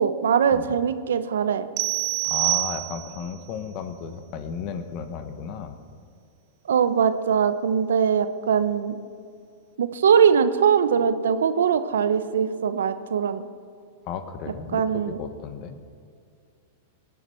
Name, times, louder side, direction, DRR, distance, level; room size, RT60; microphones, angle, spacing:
voice 1, 0.0-1.7 6.7-9.0 9.8-13.4 14.7-15.2, right 7 dB, 80° right, 12 dB, 0.8 m, -21 dB
sound 1, 1.8-3.3, right 28 dB, 50° right, 0.3 m, -26 dB
voice 2, 2.2-5.7 14.0-15.8, left 6 dB, 45° left, 9 dB, 1.3 m, -34 dB
18.0 x 9.9 x 4.5 m, 2.3 s
hypercardioid pair, 115°, 0 cm